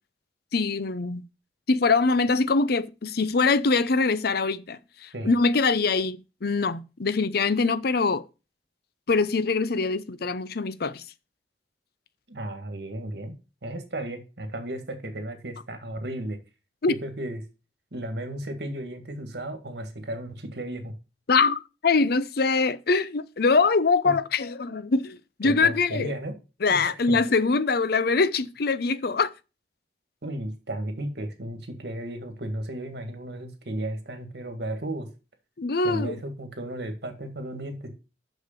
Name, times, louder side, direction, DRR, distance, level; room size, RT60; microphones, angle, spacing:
voice 1, 0.5-1.2 1.7-8.2 9.1-11.0 16.8-16.9 21.3-26.1 26.6-29.3 35.6-36.2, left 4 dB, 60° left, 0.6 m, -23 dB
voice 2, 12.3-13.4 13.6-16.4 16.9-17.4 17.9-20.9 24.1-24.2 25.4-26.3 26.7-27.2 30.2-35.1 35.8-37.9, right 1 dB, 65° right, 1.9 m, -34 dB
6.5 x 6.5 x 6.7 m
head